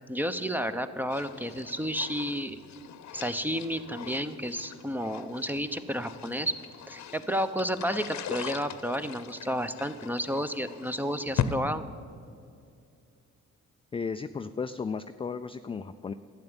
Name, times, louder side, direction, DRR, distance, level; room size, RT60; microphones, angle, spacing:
voice 1, 0.1-2.6 3.1-6.5 6.9-11.8, equal, 5° right, 11 dB, 0.8 m, -31 dB
sound 1, 1.1-11.5, left 9 dB, 65° left, 0.9 m, -39 dB
voice 2, 13.9-16.1, left 5 dB, 20° left, 9 dB, 0.4 m, -34 dB
12.0 x 9.1 x 8.9 m, 2.4 s
cardioid pair, 90°, 30 cm